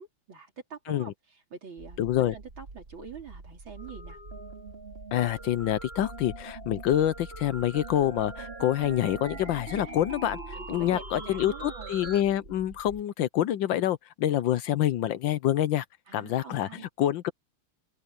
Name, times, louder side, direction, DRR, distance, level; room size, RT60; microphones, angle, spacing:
voice 1, 0.0-2.0 2.3-4.2 9.9-10.0 10.5-12.0 14.5-14.6 16.1-16.9, right 6 dB, 70° right, 3.9 m, -45 dB
sound 1, 1.8-13.0, right 3 dB, 45° right, 3.2 m, -47 dB
voice 2, 2.0-2.3 5.1-10.4 10.7-15.8 16.1-16.7 17.0-17.3, left 12 dB, 70° left, 1.4 m, -26 dB
sound 2, 3.8-12.2, right 2 dB, 25° right, 3.8 m, -43 dB
open air
omnidirectional pair, 2.3 m